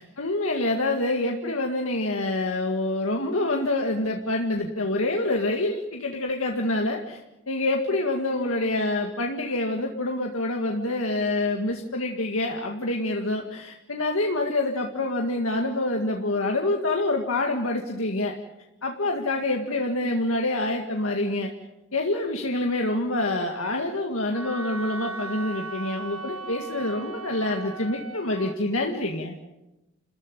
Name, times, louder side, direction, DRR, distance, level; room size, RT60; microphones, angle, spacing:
voice 1, 0.0-7.2 7.5-18.3 18.8-21.5 21.9-29.4, left 2 dB, 70° left, 1 dB, 2.0 m, -26 dB
Wind instrument woodwind instrument, 24.3-28.6, right 4 dB, 80° right, 1.8 m, -37 dB
29.5 x 14.5 x 9.3 m, 1.0 s
head